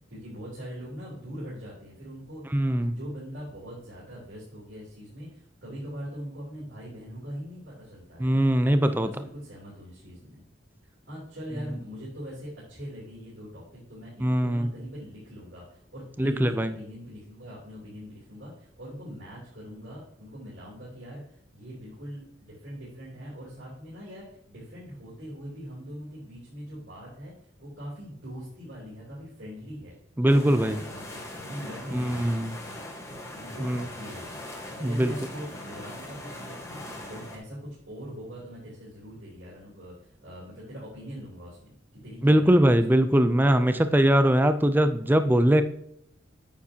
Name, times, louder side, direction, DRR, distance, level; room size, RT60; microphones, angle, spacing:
voice 1, 0.1-8.3 8.7-10.4 10.8-29.9 30.2-32.4 33.3-36.8 37.1-42.8 43.7-43.8, equal, 65° right, -7 dB, 3.2 m, -42 dB
voice 2, 2.5-3.0 8.2-9.1 14.2-14.7 16.2-16.7 30.2-30.8 31.9-32.6 33.6-33.9 34.8-35.1 42.2-45.6, right 1 dB, 10° right, 9 dB, 0.4 m, -21 dB
sound 1, 30.3-37.4, left 1 dB, 15° left, 1.3 m, -41 dB
9.2 x 7.0 x 2.8 m, 0.69 s
head